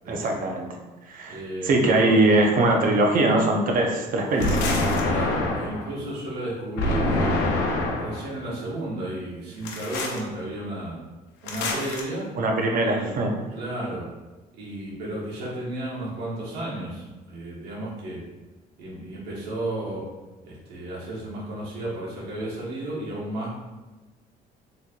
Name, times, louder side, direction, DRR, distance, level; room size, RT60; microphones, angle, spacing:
voice 1, 0.1-0.7 1.1-4.6 12.4-13.3, right 2 dB, 55° right, 2 dB, 0.7 m, -21 dB
voice 2, 1.3-2.2 5.0-7.4 8.0-11.0 11.4-12.3 12.8-13.2 13.5-14.1 14.6-18.2 18.8-20.0 20.4-23.6, right 1 dB, 80° right, -6 dB, 1.3 m, -33 dB
sound 1, 4.4-5.9 6.8-8.2 9.6-10.2 11.5-12.0, left 2 dB, 90° left, 0.7 m, -25 dB
4.2 x 3.1 x 2.4 m, 1.2 s
cardioid pair, 110°, 17 cm